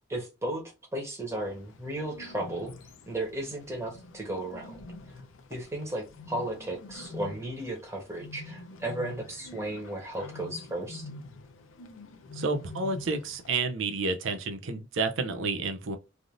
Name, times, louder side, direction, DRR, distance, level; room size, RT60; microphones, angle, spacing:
voice 1, 0.1-0.6 0.9-2.7 3.1-4.9 5.5-11.1, right 1 dB, 15° right, 1.0 m, -35 dB
Bird, 1.4-13.5, left 2 dB, 80° left, 0.6 m, -46 dB
voice 2, 12.4-16.0, right 3 dB, 80° right, 0.5 m, -30 dB
3.3 x 2.5 x 2.4 m
head